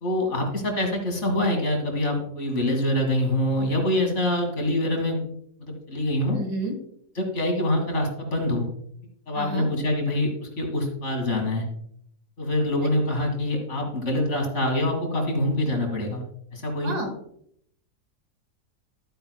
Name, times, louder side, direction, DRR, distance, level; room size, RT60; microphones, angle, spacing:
voice 1, 0.0-5.2 5.6-6.4 7.2-8.7 9.3-11.6 12.4-16.2 16.5-16.9, left 1 dB, 45° left, 3 dB, 2.0 m, -25 dB
voice 2, 6.3-6.7 9.3-9.7 16.8-17.1, right 2 dB, 65° right, 4 dB, 2.2 m, -30 dB
11.5 x 8.8 x 2.2 m, 0.68 s
omnidirectional pair, 1.8 m